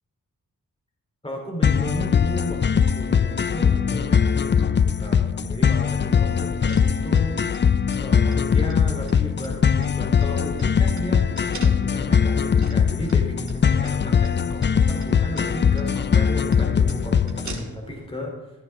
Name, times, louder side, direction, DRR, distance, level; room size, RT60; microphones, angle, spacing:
voice 1, 1.2-7.4 8.0-18.3, left 1 dB, 15° left, 0 dB, 3.1 m, -34 dB
sound 1, 1.6-17.6, left 7 dB, 35° left, 0.4 m, -21 dB
sound 2, 5.7-18.1, right 3 dB, 60° right, 2.2 m, -44 dB
15.0 x 13.0 x 3.5 m, 1.1 s
wide cardioid pair, 105°, 33 cm